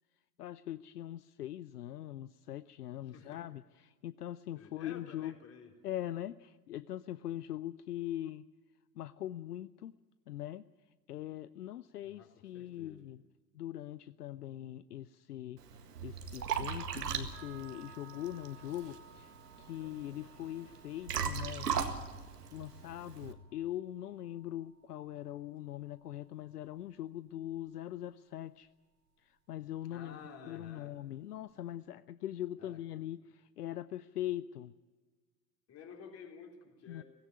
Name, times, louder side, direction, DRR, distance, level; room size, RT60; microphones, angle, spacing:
voice 1, 0.4-5.3 5.8-8.5 9.0-9.9 10.3-10.7 11.1-13.2 13.5-15.6 16.0-19.3 19.6-21.7 22.5-28.7 29.2-30.2 30.5-34.7 36.9-37.0, left 13 dB, 70° left, 16 dB, 0.6 m, -42 dB
voice 2, 3.1-3.4 4.5-5.7 12.0-13.0 29.9-31.0 32.6-32.8 35.7-37.0, left 6 dB, 30° left, 3 dB, 3.6 m, -52 dB
Liquid, 15.6-23.3, right 7 dB, 70° right, 1.9 m, -39 dB
sound 1, 17.3-27.4, right 6 dB, 40° right, 2.4 m, -60 dB
17.0 x 17.0 x 9.6 m, 1.4 s
figure-of-eight pair, 85°, 49 cm